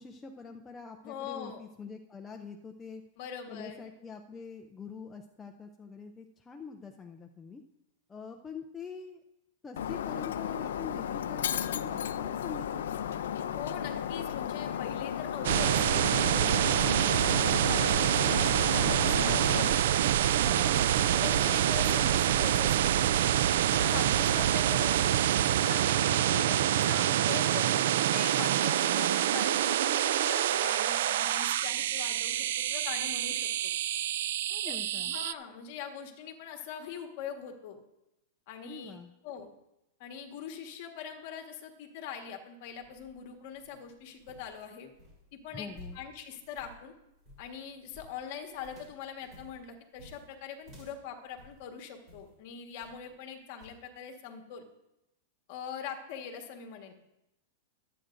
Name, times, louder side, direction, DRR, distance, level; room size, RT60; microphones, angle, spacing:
voice 1, 0.0-3.0 3.5-7.6 8.1-9.2 9.6-13.0 34.5-35.1 38.6-39.1 45.5-46.0, left 5 dB, 10° left, 3 dB, 0.4 m, -45 dB
voice 2, 1.0-1.6 3.2-3.8 13.5-18.1 18.7-19.6 20.3-25.1 25.6-33.7 34.7-37.8 38.5-39.0 39.2-39.5 40.0-44.9 45.3-46.9 47.4-54.6 55.5-57.0, left 7 dB, 40° left, 4 dB, 1.4 m, -42 dB
Shatter, 9.8-19.7, left 9 dB, 85° left, 0.5 m, -34 dB
sound 1, 15.4-35.3, right 11 dB, 55° right, 0.3 m, -26 dB
sound 2, 42.6-52.4 52.8-53.2 53.6-53.8, equal, 20° right, 3.4 m, -55 dB
23.0 x 8.8 x 2.6 m, 0.89 s
supercardioid pair, 180°, 0 cm